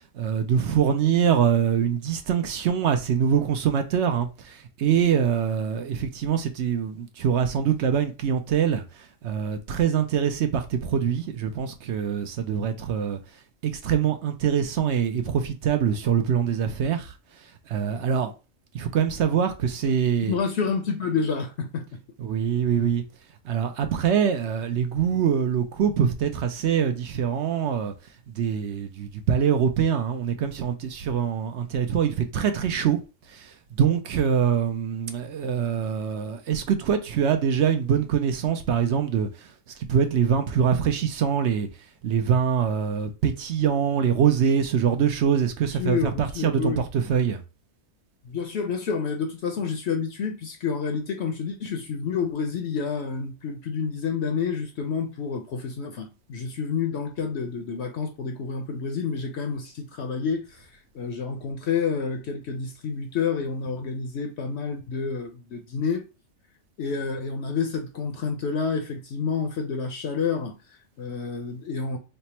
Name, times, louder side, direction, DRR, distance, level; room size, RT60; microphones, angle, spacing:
voice 1, 0.1-13.2 13.6-17.1 17.7-18.3 18.7-20.4 22.2-23.0 23.4-27.9 28.3-33.0 33.3-39.5 39.8-41.7 42.0-47.4, right 8 dB, 65° right, 0.8 m, -24 dB
voice 2, 20.3-22.0 45.8-46.9 48.2-66.0 66.8-72.0, left 5 dB, 65° left, 0.8 m, -29 dB
3.3 x 2.1 x 4.1 m
omnidirectional pair, 1.4 m